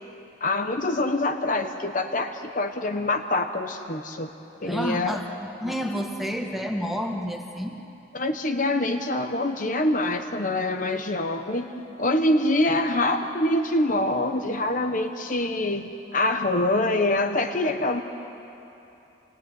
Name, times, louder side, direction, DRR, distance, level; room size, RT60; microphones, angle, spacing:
voice 1, 0.4-4.3 4.6-5.2 8.1-18.0, left 2 dB, 40° left, 5 dB, 1.1 m, -25 dB
voice 2, 4.7-7.8, equal, ahead, 2 dB, 1.6 m, -30 dB
27.5 x 19.5 x 9.6 m, 2.9 s
head